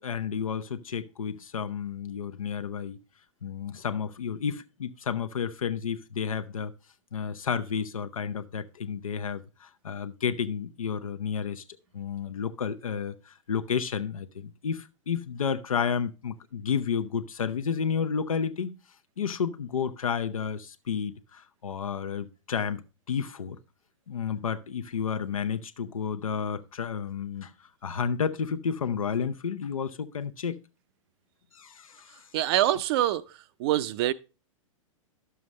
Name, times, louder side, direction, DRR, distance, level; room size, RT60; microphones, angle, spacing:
voice 1, 0.0-3.0 3.4-6.7 7.1-11.6 11.9-18.8 19.2-23.6 24.1-27.5 27.8-30.5 31.5-32.1, left 7 dB, 80° left, 0.7 m, -31 dB
voice 2, 32.3-33.3 33.6-34.1, right 13 dB, 50° right, 0.5 m, -25 dB
11.0 x 7.0 x 3.1 m
hypercardioid pair, 110°, 17 cm